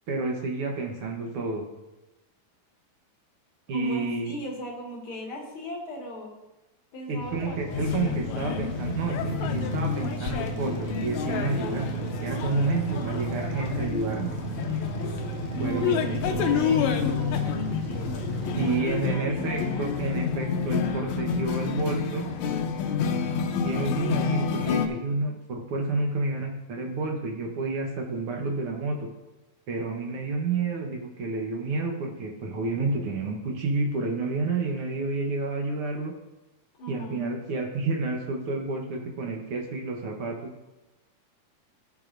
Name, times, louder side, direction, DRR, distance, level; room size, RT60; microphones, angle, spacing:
voice 1, 0.1-1.7 3.7-4.4 7.1-14.4 15.6-16.4 18.6-22.3 23.6-29.1 29.7-36.1 36.9-40.5, right 3 dB, 65° right, 1 dB, 1.4 m, -30 dB
voice 2, 3.7-6.3 6.9-8.2 15.0-17.4 18.5-19.8 36.8-37.2, equal, 45° left, -2 dB, 2.4 m, -37 dB
sound 1, 7.2-18.8, right 7 dB, 85° right, 1.2 m, -36 dB
sound 2, 7.7-24.9, left 7 dB, 75° left, 1.7 m, -29 dB
17.0 x 7.1 x 2.6 m, 1.0 s
omnidirectional pair, 3.9 m